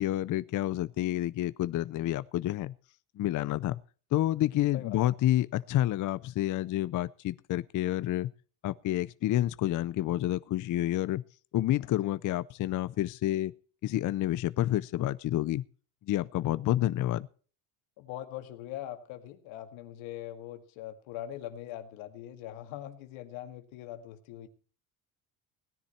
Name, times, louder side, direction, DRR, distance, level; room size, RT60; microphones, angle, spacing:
voice 1, 0.0-2.7 3.2-3.8 4.1-8.3 8.6-11.2 11.5-13.5 13.8-15.6 16.1-17.3, left 14 dB, 45° left, 0.5 m, -29 dB
voice 2, 4.7-5.1 11.9-12.2 18.0-24.5, left 12 dB, 90° left, 2.1 m, -42 dB
17.5 x 10.0 x 4.4 m
cardioid pair, 115°, 45 cm